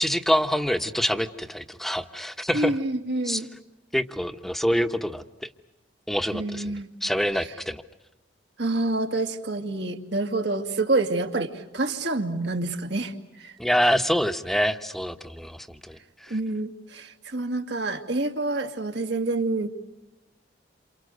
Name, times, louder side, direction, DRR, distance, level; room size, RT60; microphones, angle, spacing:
voice 1, 0.0-2.7 3.2-3.4 3.9-5.2 6.1-6.7 7.0-7.8 13.6-16.3, equal, ahead, 8 dB, 1.1 m, -26 dB
voice 2, 2.5-3.5 6.3-6.9 8.6-13.1 13.4-13.5 13.8-13.9 16.3-19.7, right 2 dB, 70° right, 5 dB, 2.3 m, -27 dB
28.5 x 28.5 x 6.6 m, 0.93 s
head